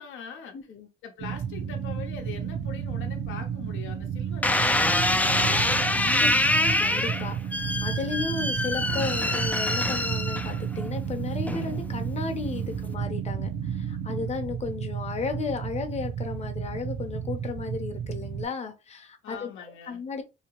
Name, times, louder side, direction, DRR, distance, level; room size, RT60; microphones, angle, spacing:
voice 1, 0.0-0.6 1.0-6.5 12.6-12.8 19.2-20.0, left 7 dB, 80° left, 0.8 m, -42 dB
voice 2, 0.5-0.9 6.0-6.3 6.8-19.5 19.9-20.2, left 4 dB, 35° left, 0.7 m, -34 dB
sound 1, 1.2-18.4, right 8 dB, 60° right, 0.6 m, -32 dB
sound 2, 4.4-10.8 11.5-11.9, left 2 dB, 10° left, 0.3 m, -25 dB
2.8 x 2.7 x 3.0 m
cardioid pair, 90°, 20 cm